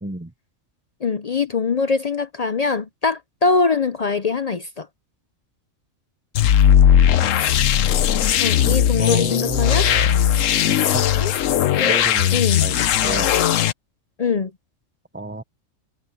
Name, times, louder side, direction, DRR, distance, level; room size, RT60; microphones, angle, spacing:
voice 1, 0.0-0.3 7.2-7.3 9.0-10.2 10.9-11.1 11.9-12.8 13.0-13.3 15.1-15.4, right 2 dB, 10° right, 0.7 m, -29 dB
voice 2, 1.0-4.9 8.4-9.9 11.2-11.3 11.7-12.0 12.3-12.6 14.2-14.5, left 4 dB, 50° left, 0.4 m, -22 dB
sound 1, 6.4-13.7, left 10 dB, 75° left, 1.1 m, -18 dB
omnidirectional pair, 1.4 m